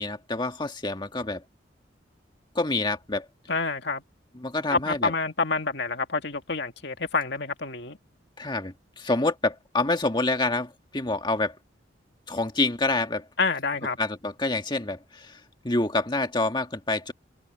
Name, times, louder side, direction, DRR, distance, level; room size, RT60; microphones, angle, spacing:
voice 1, 0.0-1.4 2.6-3.3 4.4-5.1 8.4-11.5 12.3-13.2 14.0-17.1, left 2 dB, 25° left, 1.8 m, -27 dB
voice 2, 3.5-4.0 4.7-8.0 13.4-14.0, left 4 dB, 60° left, 2.3 m, -27 dB
head